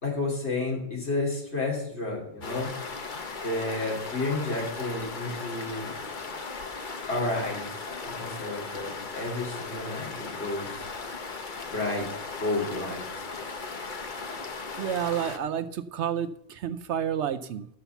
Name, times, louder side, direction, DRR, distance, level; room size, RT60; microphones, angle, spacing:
voice 1, 0.0-2.7 3.4-5.9 7.1-7.7 8.0-10.8 11.7-12.1 12.4-13.0, left 2 dB, 65° left, -2 dB, 3.1 m, -31 dB
sound 1, 2.4-15.4, left 4 dB, 45° left, 1.1 m, -37 dB
voice 2, 14.8-17.7, right 9 dB, 75° right, 11 dB, 0.9 m, -30 dB
13.0 x 5.6 x 7.0 m, 0.71 s
omnidirectional pair, 1.2 m